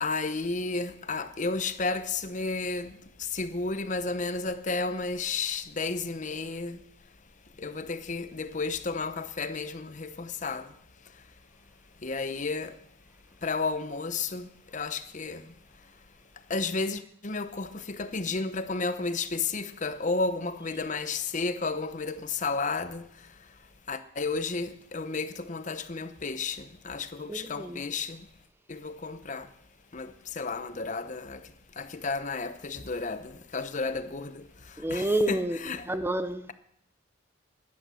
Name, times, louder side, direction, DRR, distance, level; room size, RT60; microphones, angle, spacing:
voice 1, 0.0-6.8 7.6-11.3 12.0-12.8 13.4-16.0 16.3-28.3 28.7-29.5 29.9-35.9, left 4 dB, 40° left, 0.9 m, -33 dB
voice 2, 27.3-27.8 34.8-35.6 35.9-36.5, right 1 dB, 10° right, 0.6 m, -29 dB
12.0 x 11.0 x 7.7 m
head